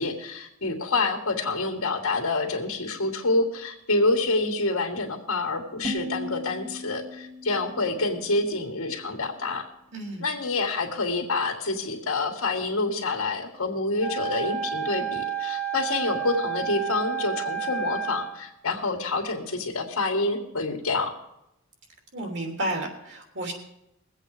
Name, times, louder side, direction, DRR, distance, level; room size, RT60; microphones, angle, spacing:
voice 1, 0.0-9.7 10.2-21.1, left 3 dB, 80° left, 2 dB, 1.8 m, -27 dB
sound 1, 5.8-8.8, equal, 30° right, 1.7 m, -38 dB
voice 2, 9.9-10.3 22.1-23.5, right 1 dB, 55° right, 3 dB, 3.2 m, -31 dB
Wind instrument woodwind instrument, 14.0-18.4, right 8 dB, 85° right, 4.9 m, -30 dB
21.5 x 8.1 x 4.9 m, 0.83 s
head